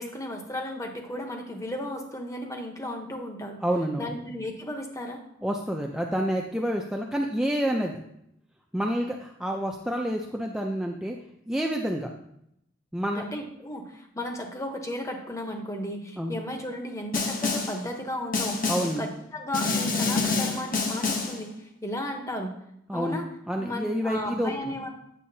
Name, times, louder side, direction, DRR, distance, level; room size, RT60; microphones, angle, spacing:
voice 1, 0.0-3.6 4.0-5.2 13.1-18.7 19.0-21.5 21.8-22.5 22.9-23.3 23.6-24.9, left 1 dB, 15° left, 3 dB, 0.9 m, -34 dB
voice 2, 3.6-4.1 5.4-8.0 8.7-11.2 11.5-12.1 12.9-13.2 16.2-16.3 18.7-19.0 22.9-23.2 23.5-24.7, equal, 5° right, 1 dB, 0.4 m, -28 dB
Snare drum, 17.1-17.8 18.3-19.0 19.5-21.4, left 4 dB, 45° left, 1.0 m, -27 dB
8.6 x 7.4 x 2.7 m, 0.77 s
head